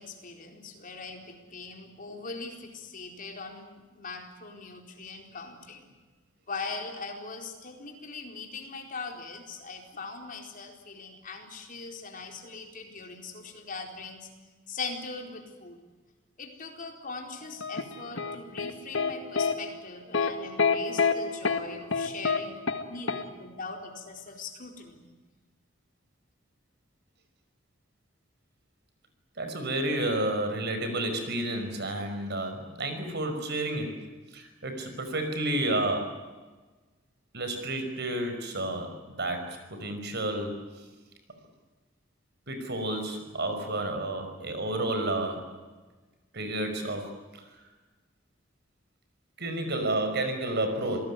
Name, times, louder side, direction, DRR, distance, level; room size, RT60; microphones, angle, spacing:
voice 1, 0.0-5.9 6.5-14.3 14.7-15.8 16.4-22.6 22.9-25.0, left 4 dB, 45° left, 3 dB, 4.4 m, -41 dB
sound 1, 17.6-19.1 19.4-19.5 20.1-20.3 20.6-21.1 21.4-21.6 21.9-22.4 22.7-22.8 23.1-23.2, left 5 dB, 70° left, 1.8 m, -26 dB
voice 2, 29.4-34.0 34.3-36.2 37.3-40.6 42.5-45.5 46.3-47.1 49.4-51.0, right 1 dB, 60° right, 7 dB, 5.5 m, -31 dB
27.5 x 18.5 x 9.9 m, 1.3 s
head